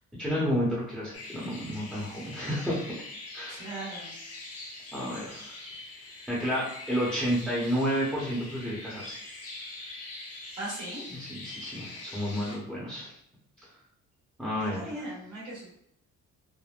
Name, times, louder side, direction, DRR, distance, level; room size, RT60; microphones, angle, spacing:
voice 1, 0.2-2.9 3.3-3.6 4.9-5.5 6.3-9.2 11.1-13.1 14.4-14.9, equal, ahead, -7 dB, 0.8 m, -31 dB
sound 1, 1.1-12.6, left 2 dB, 50° left, 0.9 m, -43 dB
voice 2, 3.5-4.1 10.6-11.0 14.6-15.7, right 1 dB, 70° right, -8 dB, 1.4 m, -38 dB
3.4 x 2.1 x 2.4 m, 0.72 s
cardioid pair, 90°, 30 cm